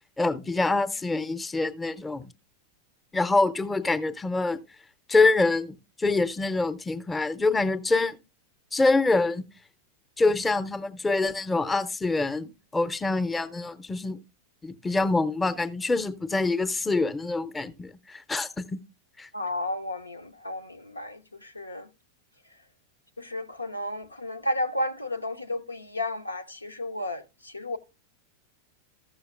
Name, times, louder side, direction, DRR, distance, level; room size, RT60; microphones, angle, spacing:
voice 1, 0.2-2.3 3.1-4.6 5.1-8.2 8.7-9.5 10.2-14.2 14.6-18.8 19.2-19.3, left 3 dB, 10° left, 0.7 m, -25 dB
voice 2, 19.3-21.9 23.2-27.8, left 1 dB, 85° left, 0.7 m, -33 dB
14.5 x 6.3 x 2.4 m
figure-of-eight pair, 90°, 0 cm